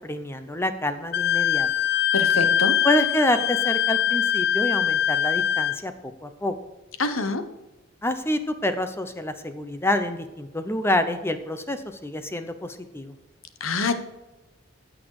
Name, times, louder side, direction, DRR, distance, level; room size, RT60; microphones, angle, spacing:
voice 1, 0.0-1.7 2.8-5.9 6.2-6.5 8.0-13.1, left 1 dB, 10° left, 9 dB, 0.8 m, -27 dB
Wind instrument woodwind instrument, 1.1-5.8, left 9 dB, 50° left, 0.4 m, -23 dB
voice 2, 2.1-2.8 7.0-7.4 13.6-14.0, left 3 dB, 75° left, 9 dB, 1.2 m, -25 dB
15.5 x 6.3 x 4.9 m, 1.1 s
head